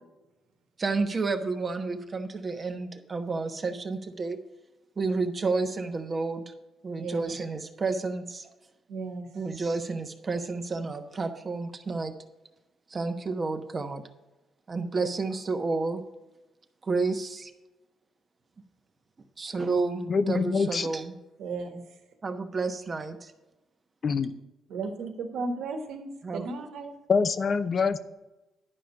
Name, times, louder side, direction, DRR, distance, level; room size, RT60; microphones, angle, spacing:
voice 1, 0.8-4.4 5.0-6.4 6.8-8.5 9.3-12.1 12.9-14.0 14.7-16.0 16.8-17.5 19.4-21.2 22.2-23.3 26.2-26.4, right 3 dB, 35° right, 7 dB, 1.1 m, -30 dB
voice 2, 7.0-7.4 8.9-9.3 21.4-21.8 24.7-26.9, right 3 dB, 80° right, 5 dB, 1.5 m, -35 dB
voice 3, 20.1-20.9 24.0-24.3 27.1-28.0, left 5 dB, 45° left, 12 dB, 0.7 m, -25 dB
11.0 x 5.0 x 7.1 m, 1.0 s
cardioid pair, 90°, 0 cm